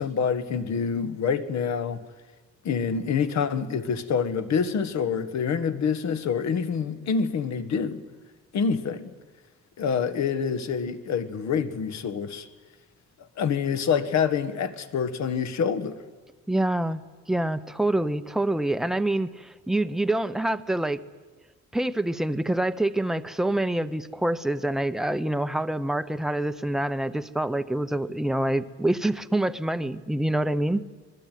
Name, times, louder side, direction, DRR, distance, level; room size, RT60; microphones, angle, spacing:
voice 1, 0.0-2.0 2.6-8.0 8.5-9.1 9.8-12.5 13.4-16.0, left 6 dB, 65° left, 1.7 m, -26 dB
voice 2, 16.5-17.0 17.3-21.0 21.7-30.8, right 1 dB, ahead, 0.7 m, -26 dB
26.0 x 21.5 x 9.3 m
cardioid pair, 155°, 30 cm